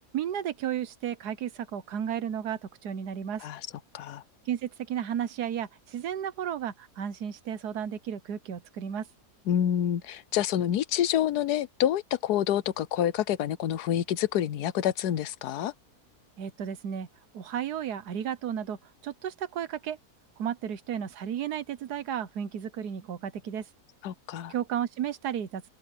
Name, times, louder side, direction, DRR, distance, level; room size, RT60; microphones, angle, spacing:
voice 1, 0.1-3.4 4.5-9.1 16.4-17.1 17.3-18.8 19.0-20.0 20.4-23.6 24.5-25.7, right 9 dB, 85° right, 1.5 m, -33 dB
voice 2, 9.5-15.7 24.0-24.5, left 10 dB, 85° left, 1.3 m, -27 dB
open air
omnidirectional pair, 1.6 m